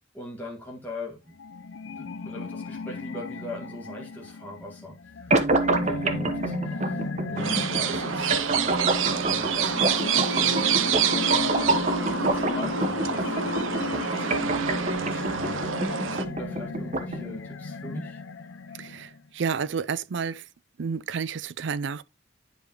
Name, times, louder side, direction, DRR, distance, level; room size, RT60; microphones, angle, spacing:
voice 1, 0.1-1.3 2.0-5.3 5.8-11.8 12.1-14.6 15.0-15.6 16.0-18.2, left 1 dB, 10° left, 1.7 m, -40 dB
sound 1, 1.4-19.3, left 4 dB, 70° left, 0.7 m, -35 dB
sound 2, 5.3-17.3, right 2 dB, 40° right, 1.1 m, -28 dB
sound 3, 7.4-16.2, right 8 dB, 80° right, 0.8 m, -27 dB
voice 2, 18.8-20.4 20.8-22.0, right 6 dB, 65° right, 0.5 m, -30 dB
10.5 x 4.8 x 3.0 m
head